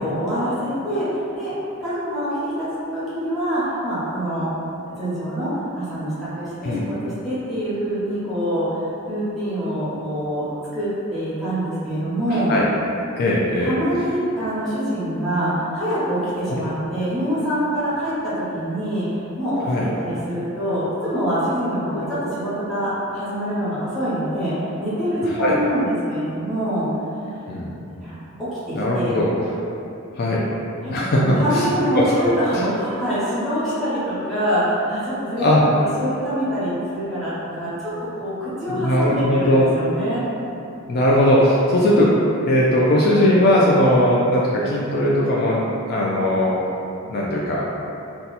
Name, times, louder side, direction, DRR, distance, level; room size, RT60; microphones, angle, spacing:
voice 1, 0.0-1.5 1.8-4.5 5.0-5.5 5.7-8.8 9.1-10.5 10.7-12.5 13.6-19.6 19.9-26.9 28.0-28.1 28.4-29.2 30.8-35.6 36.0-40.2, equal, ahead, -14 dB, 1.1 m, -25 dB
voice 2, 12.3-12.6 13.2-13.8 16.5-16.6 19.7-19.9 21.9-22.0 25.2-25.6 27.5-27.7 28.7-29.3 30.1-30.4 30.9-31.6 31.9-32.6 35.4-35.6 38.7-39.7 40.9-42.1 42.4-46.6 47.1-47.9, left 1 dB, 50° left, -5 dB, 0.3 m, -19 dB
2.7 x 2.3 x 4.0 m, 2.7 s
head